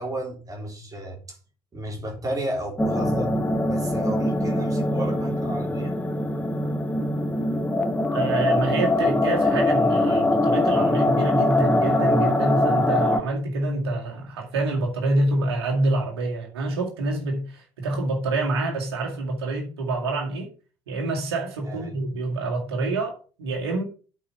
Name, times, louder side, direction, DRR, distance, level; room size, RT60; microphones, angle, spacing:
voice 1, 0.0-1.4 1.7-6.0 21.6-22.0, right 1 dB, 25° right, 3.7 m, -33 dB
sound 1, 2.8-13.2, left 1 dB, 10° left, 1.3 m, -22 dB
voice 2, 8.1-20.5 20.9-23.8, right 2 dB, 70° right, 2.2 m, -26 dB
8.6 x 5.4 x 5.7 m
figure-of-eight pair, 60°, 13 cm